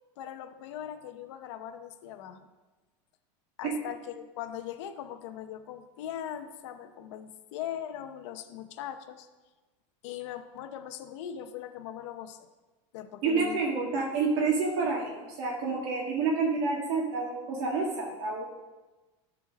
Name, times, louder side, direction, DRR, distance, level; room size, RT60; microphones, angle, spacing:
voice 1, 0.2-2.5 3.6-9.3 10.0-12.5 12.9-13.6 14.0-14.1, left 10 dB, 70° left, 7 dB, 0.8 m, -40 dB
voice 2, 13.2-18.4, right 4 dB, 60° right, -2 dB, 1.8 m, -29 dB
12.0 x 4.5 x 6.3 m, 1.2 s
supercardioid pair, 150°, 16 cm